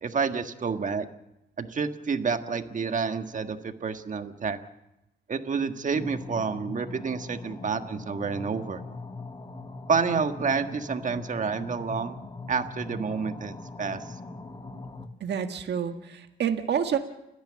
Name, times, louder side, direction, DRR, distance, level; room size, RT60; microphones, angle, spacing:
voice 1, 0.0-1.1 1.6-4.6 5.3-8.8 9.9-12.2 12.5-14.1, right 5 dB, 40° right, 7 dB, 1.7 m, -29 dB
sound 1, 5.9-15.1, left 3 dB, 20° left, 1.6 m, -41 dB
voice 2, 15.2-17.0, right 8 dB, 60° right, 6 dB, 1.8 m, -28 dB
30.0 x 10.5 x 8.9 m, 0.91 s
cardioid pair, 90°, 20 cm